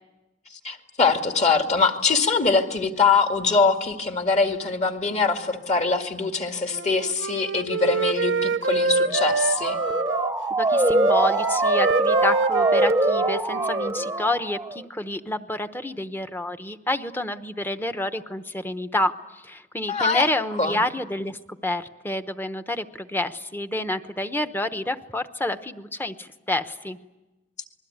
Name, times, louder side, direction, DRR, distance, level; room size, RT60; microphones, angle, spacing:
voice 1, 0.5-9.8 19.9-20.3 20.6-20.8, left 4 dB, 40° left, 5 dB, 2.2 m, -23 dB
Wind instrument woodwind instrument, 6.7-10.3 10.7-14.3, right 4 dB, 80° right, 0.9 m, -26 dB
Motor vehicle (road) / Siren, 8.9-14.8, right 1 dB, 15° right, 0.9 m, -24 dB
voice 2, 10.6-27.0, left 1 dB, 10° left, 9 dB, 1.0 m, -28 dB
27.5 x 21.0 x 9.5 m, 1.1 s
head